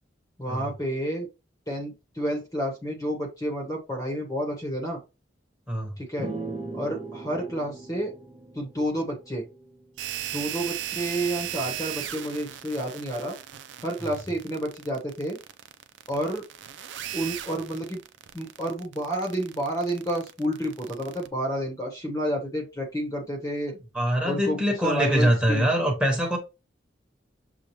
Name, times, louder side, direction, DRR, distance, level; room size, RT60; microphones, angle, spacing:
voice 1, 0.4-1.3 1.7-5.0 6.0-6.3 6.7-8.1 8.5-9.5 10.3-13.4 13.8-15.4 16.1-16.4 17.1-18.0 18.3-23.8 24.2-25.7, right 1 dB, 20° left, 1.0 m, -30 dB
sound 1, 6.2-9.8, right 3 dB, 30° right, 0.9 m, -38 dB
sound 2, 10.0-21.3, right 11 dB, 75° right, 0.4 m, -37 dB
voice 2, 23.9-26.4, equal, 5° right, 1.3 m, -23 dB
6.8 x 2.3 x 2.9 m
head